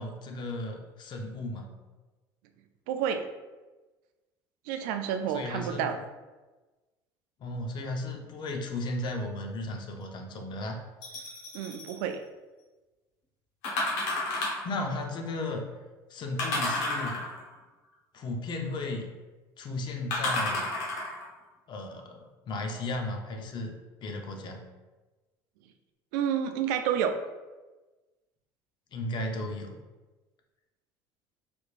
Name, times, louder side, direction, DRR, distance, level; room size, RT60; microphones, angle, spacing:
voice 1, 0.0-1.7 5.3-6.0 7.4-10.8 14.6-15.6 16.1-17.2 18.1-19.1 19.6-20.7 21.7-23.8 24.0-24.6 28.9-29.8, left 2 dB, 50° left, 3 dB, 0.6 m, -35 dB
voice 2, 2.9-3.2 4.7-6.0 11.5-12.2 26.1-27.1, right 8 dB, 80° right, 7 dB, 0.4 m, -29 dB
sound 1, 11.0-12.0 13.6-14.7 16.4-17.5 20.1-21.3 21.9-22.0, left 2 dB, 80° left, 1.0 m, -31 dB
3.4 x 3.1 x 2.4 m, 1.2 s
supercardioid pair, 85°, 10 cm